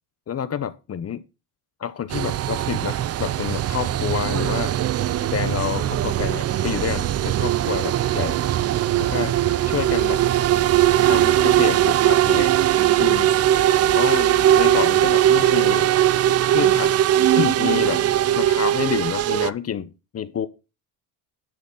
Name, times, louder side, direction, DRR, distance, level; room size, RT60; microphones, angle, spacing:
voice 1, 0.3-1.2 1.8-4.7 5.3-8.4 9.0-9.4 9.6-10.2 11.0-12.5 13.0-13.3 13.9-14.3 14.6-15.9 16.5-17.0 17.3-18.0 18.3-20.5, left 8 dB, 30° left, 0.7 m, -28 dB
sound 1, 2.1-19.5, right 12 dB, 35° right, 0.4 m, -20 dB
10.5 x 4.1 x 5.5 m
supercardioid pair, 95°, 46 cm